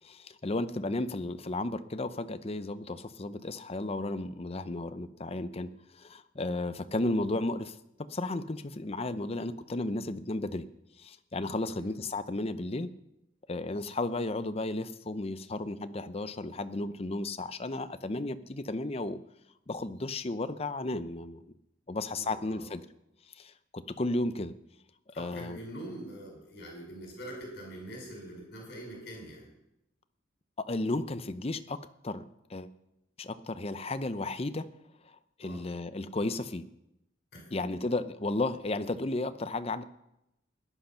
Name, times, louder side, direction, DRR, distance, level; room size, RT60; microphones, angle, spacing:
voice 1, 0.0-7.8 8.1-10.7 11.0-12.9 13.5-19.2 19.7-21.4 21.9-22.8 23.4-24.5 25.2-25.6 30.7-31.8 32.0-32.2 32.5-32.7 33.2-34.7 35.4-36.6 37.5-39.8, left 2 dB, 30° left, 12 dB, 0.7 m, -33 dB
voice 2, 11.6-11.9 21.9-22.7 25.1-29.5 35.4-35.6 37.3-37.4, right 1 dB, 60° left, 0 dB, 5.6 m, -44 dB
17.0 x 10.5 x 5.8 m, 0.87 s
head